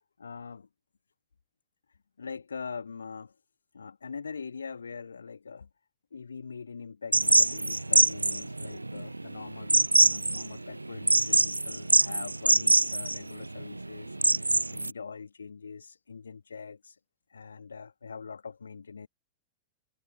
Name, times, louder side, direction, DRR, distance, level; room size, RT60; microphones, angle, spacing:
voice 1, 0.2-0.7 2.2-3.4 3.7-5.7 6.1-17.0 17.3-19.1, left 5 dB, 75° left, 2.2 m, -43 dB
sound 1, 7.1-14.9, right 2 dB, 85° right, 0.7 m, -24 dB
figure-of-eight pair, 90°, 0 cm